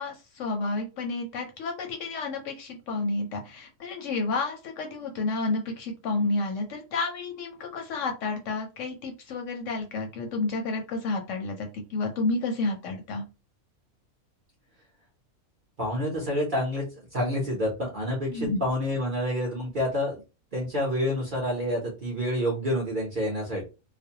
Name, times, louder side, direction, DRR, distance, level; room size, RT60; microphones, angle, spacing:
voice 1, 0.0-13.2 18.3-18.6, left 3 dB, 70° left, 3 dB, 0.8 m, -30 dB
voice 2, 15.8-16.9 17.1-20.2 20.5-23.6, left 1 dB, 45° right, -2 dB, 0.7 m, -28 dB
2.4 x 2.1 x 2.7 m, 0.29 s
omnidirectional pair, 1.5 m